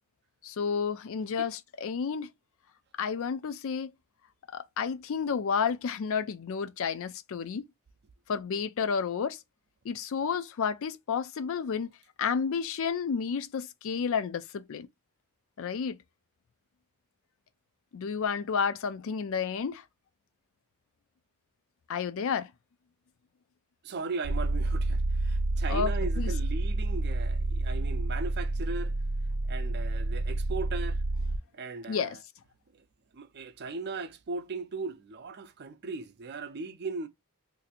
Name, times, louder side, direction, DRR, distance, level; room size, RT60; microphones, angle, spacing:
voice 1, 0.4-2.3 3.0-3.9 4.5-7.6 8.3-9.4 9.8-11.9 12.2-14.9 15.6-16.0 17.9-19.8 21.9-22.5 25.7-25.9 26.2-26.3 31.9-32.2, left 6 dB, 65° left, 0.4 m, -31 dB
voice 2, 23.8-29.0 29.4-31.0 31.5-32.2 32.7-32.8 33.1-37.1, right 4 dB, 50° right, 0.5 m, -38 dB
sound 1, 24.2-31.4, right 2 dB, 90° right, 0.6 m, -29 dB
2.6 x 2.5 x 3.9 m
head